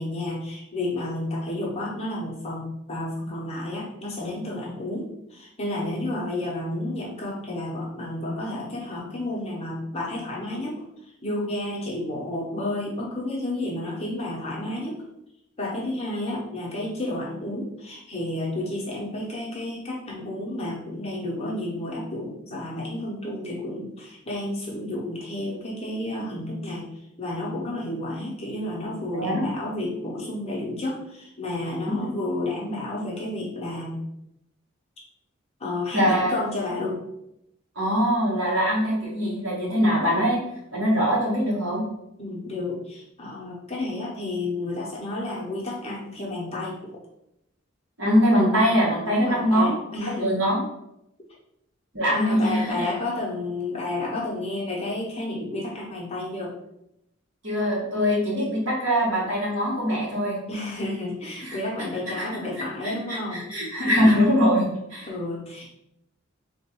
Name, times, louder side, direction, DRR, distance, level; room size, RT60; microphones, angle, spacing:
voice 1, 0.0-10.8 11.2-15.0 15.6-34.0 35.6-37.0 42.2-46.9 48.7-48.8 49.1-50.4 52.1-56.5 60.5-63.5 65.1-65.7, left 1 dB, 30° left, -4 dB, 0.9 m, -31 dB
voice 2, 35.9-36.4 37.7-40.4 40.7-41.8 48.0-49.7 50.0-50.6 51.9-52.7 57.4-60.4 61.4-61.6 62.2-62.3 62.8-65.1, equal, 60° right, -5 dB, 1.5 m, -22 dB
3.4 x 2.5 x 4.4 m, 0.82 s
head